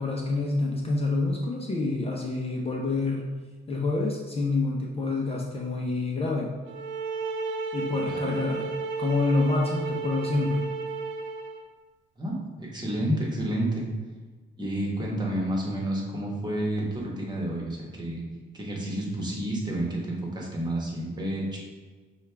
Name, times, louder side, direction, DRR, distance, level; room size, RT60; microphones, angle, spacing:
voice 1, 0.0-3.3 3.7-6.5 7.7-8.7 9.0-10.6, left 3 dB, 30° left, -2 dB, 0.6 m, -27 dB
sound 1, 6.7-11.6, right 4 dB, 70° right, 0.5 m, -33 dB
voice 2, 7.8-8.2 12.2-13.9 14.6-18.2 18.5-21.6, right 1 dB, 20° right, -3 dB, 1.2 m, -30 dB
6.1 x 2.4 x 3.3 m, 1.4 s
cardioid pair, 90°, 20 cm